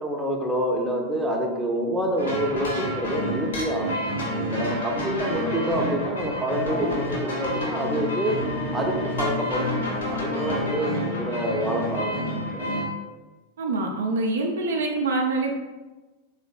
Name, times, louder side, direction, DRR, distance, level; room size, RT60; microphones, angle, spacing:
voice 1, 0.0-4.0 4.5-8.4 8.7-12.7, right 1 dB, 5° right, -1 dB, 0.7 m, -27 dB
sound 1, 2.2-12.8, left 1 dB, 70° left, 1.5 m, -29 dB
voice 2, 13.6-15.6, right 3 dB, 65° right, 1 dB, 0.6 m, -25 dB
3.8 x 3.2 x 3.6 m, 1.2 s
figure-of-eight pair, 90°, 0 cm